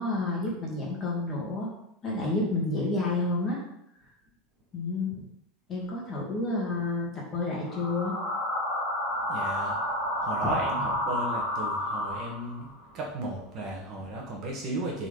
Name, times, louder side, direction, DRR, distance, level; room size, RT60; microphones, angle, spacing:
voice 1, 0.0-1.7 2.0-3.6 4.7-5.1 5.7-8.2 10.4-10.5, left 2 dB, 20° left, -3 dB, 2.2 m, -30 dB
sound 1, 7.6-12.7, left 1 dB, 15° right, 3.1 m, -30 dB
voice 2, 9.3-9.9 10.2-12.7 12.9-15.1, right 1 dB, 30° right, -2 dB, 1.6 m, -34 dB
7.1 x 4.3 x 5.5 m, 0.77 s
supercardioid pair, 175°, 0 cm